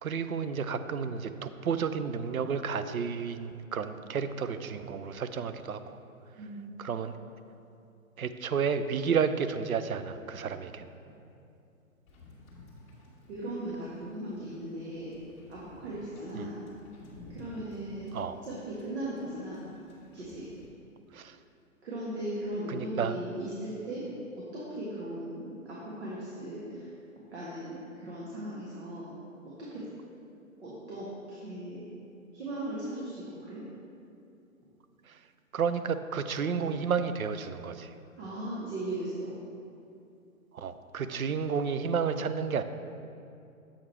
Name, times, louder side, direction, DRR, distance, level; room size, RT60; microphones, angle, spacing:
voice 1, 0.0-6.0 6.8-7.1 8.2-10.9 16.4-16.5 18.1-18.4 21.1-21.4 22.7-23.1 35.5-37.9 40.5-42.6, right 6 dB, 80° right, 10 dB, 0.5 m, -31 dB
voice 2, 6.4-6.8 13.3-15.1 15.5-16.6 17.3-19.7 20.1-20.5 21.8-24.1 24.3-26.9 27.3-29.1 29.4-29.8 30.6-31.9 32.3-33.6 38.2-39.4, right 1 dB, 50° right, -7 dB, 1.5 m, -38 dB
Wind / Boat Water vehicle, 12.1-20.7, left 1 dB, 15° left, 1.2 m, -54 dB
7.3 x 5.0 x 4.3 m, 2.6 s
figure-of-eight pair, 125°, 42 cm